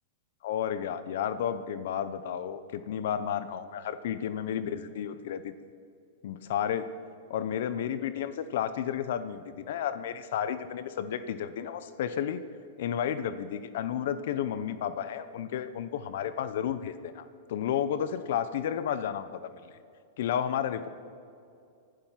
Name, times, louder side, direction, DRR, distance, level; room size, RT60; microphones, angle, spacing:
voice 1, 0.4-5.5 6.2-6.8 7.3-12.4 12.8-19.7 20.2-20.9, left 9 dB, 65° left, 13 dB, 0.8 m, -32 dB
20.0 x 12.0 x 5.8 m, 2.5 s
supercardioid pair, 150°, 0 cm